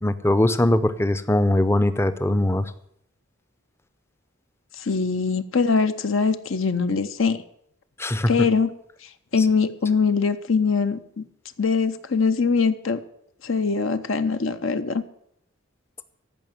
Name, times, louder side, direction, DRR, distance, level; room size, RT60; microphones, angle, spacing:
voice 1, 0.0-2.7 8.0-8.5 9.4-9.5, left 1 dB, 10° left, 13 dB, 0.6 m, -21 dB
voice 2, 4.8-7.4 8.3-8.7 9.3-11.3 11.6-13.0 13.4-15.0, left 5 dB, 65° left, 10 dB, 0.7 m, -22 dB
14.5 x 6.0 x 9.2 m, 0.70 s
head